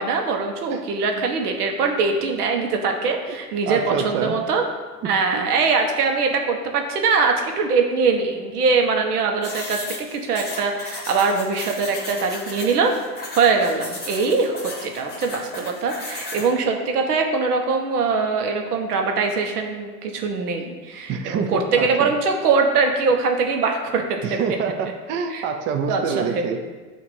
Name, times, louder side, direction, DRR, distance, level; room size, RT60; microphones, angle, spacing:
voice 1, 0.0-4.6 5.0-24.4 25.3-25.4 25.9-26.5, right 4 dB, 75° right, 3 dB, 1.1 m, -22 dB
voice 2, 3.7-4.4 5.0-5.5 21.1-22.1 24.2-26.6, right 6 dB, 25° right, 5 dB, 0.4 m, -26 dB
sound 1, 9.4-16.5, left 2 dB, 20° left, 2.0 m, -35 dB
8.2 x 2.9 x 5.3 m, 1.3 s
hypercardioid pair, 100°, 46 cm